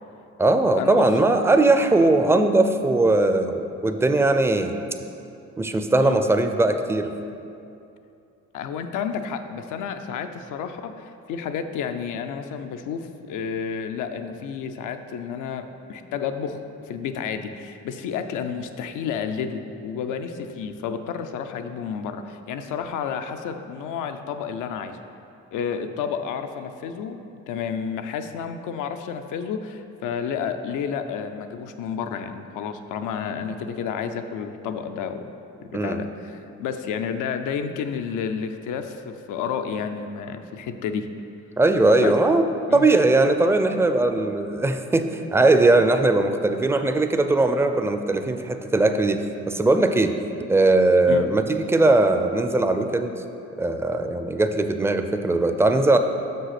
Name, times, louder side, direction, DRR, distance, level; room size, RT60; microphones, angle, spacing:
voice 1, 0.4-4.7 5.6-7.1 35.7-36.0 41.6-42.4 42.7-50.1 50.5-53.1 53.6-56.0, right 2 dB, 10° right, 7 dB, 0.4 m, -20 dB
voice 2, 8.5-16.6 16.9-25.0 25.5-27.2 27.5-35.3 35.6-41.1 42.0-42.1 42.7-42.9 51.1-51.3, left 7 dB, 85° left, 7 dB, 0.6 m, -31 dB
6.1 x 5.4 x 5.8 m, 2.7 s
cardioid pair, 90°, 30 cm